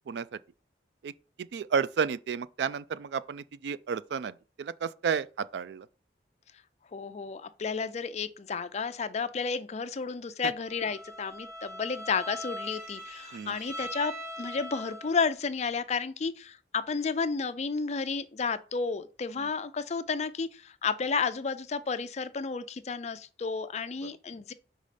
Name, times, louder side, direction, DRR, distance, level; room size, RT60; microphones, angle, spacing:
voice 1, 1.4-5.9 10.4-10.5 13.3-13.5 19.4-19.5, right 6 dB, 70° right, 0.3 m, -32 dB
voice 2, 6.9-14.1 14.4-24.5, left 5 dB, 40° left, 0.4 m, -32 dB
Bowed string instrument, 10.6-15.3, equal, 20° right, 1.2 m, -41 dB
5.4 x 4.1 x 5.0 m
head